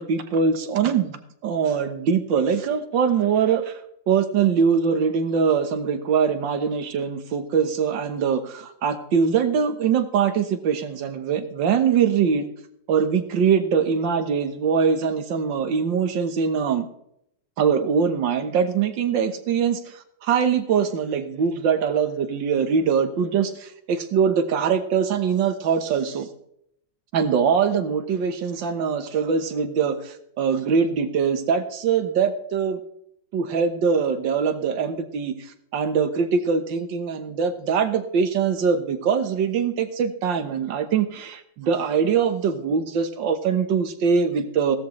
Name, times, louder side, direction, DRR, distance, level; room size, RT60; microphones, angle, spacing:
voice 1, 0.0-3.7 4.1-12.5 12.9-16.9 17.6-26.3 27.1-32.8 33.3-44.8, right 6 dB, 80° right, 9 dB, 1.9 m, -22 dB
16.5 x 13.0 x 3.2 m, 0.73 s
omnidirectional pair, 2.0 m